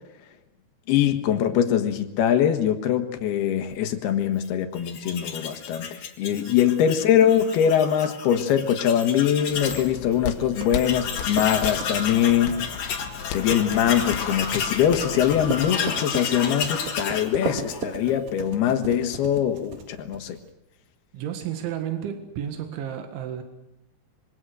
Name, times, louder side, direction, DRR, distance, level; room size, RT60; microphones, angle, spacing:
voice 1, 0.9-12.5 13.3-20.4, left 9 dB, 65° left, 7 dB, 3.2 m, -22 dB
Tools, 4.8-9.9 10.2-10.3 10.5-18.1, left 6 dB, 50° left, 2.9 m, -32 dB
sound 1, 9.5-15.8, left 9 dB, 85° left, 3.7 m, -36 dB
sound 2, 9.5-20.5, right 6 dB, 60° right, 3.4 m, -38 dB
voice 2, 21.1-23.4, right 9 dB, 90° right, 6 dB, 4.1 m, -32 dB
26.0 x 23.5 x 6.3 m, 0.92 s
omnidirectional pair, 5.2 m